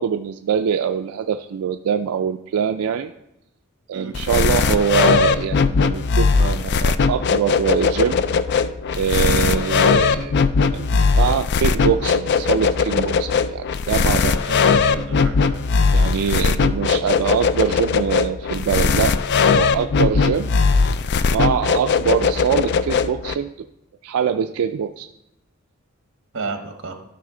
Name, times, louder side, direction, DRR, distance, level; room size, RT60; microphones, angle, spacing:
voice 1, 0.0-3.1 3.9-8.2 8.9-10.4 10.7-14.3 15.9-19.2 19.5-20.5 21.3-23.7 24.0-25.1, right 7 dB, 90° right, 7 dB, 0.3 m, -23 dB
sound 1, 4.1-23.3, left 5 dB, 55° left, 0.4 m, -19 dB
voice 2, 14.2-15.6 26.3-27.0, right 4 dB, 65° right, 6 dB, 1.1 m, -32 dB
13.0 x 5.5 x 3.8 m, 0.87 s
head